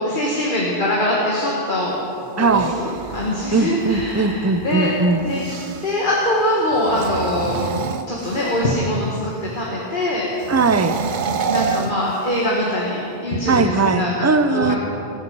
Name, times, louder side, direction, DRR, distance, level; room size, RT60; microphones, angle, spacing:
voice 1, 0.0-2.0 2.4-4.9 5.2-7.6 8.1-10.3 11.4-14.2 14.5-14.8, left 1 dB, 50° left, -4 dB, 1.9 m, -22 dB
sound 1, 2.3-6.0 6.8-8.8 10.4-12.7, right 5 dB, 55° right, 0.7 m, -29 dB
voice 2, 2.4-2.7 3.5-5.2 10.5-10.9 13.5-14.8, right 4 dB, 20° right, 9 dB, 0.4 m, -19 dB
19.5 x 8.4 x 5.6 m, 2.7 s
omnidirectional pair, 1.1 m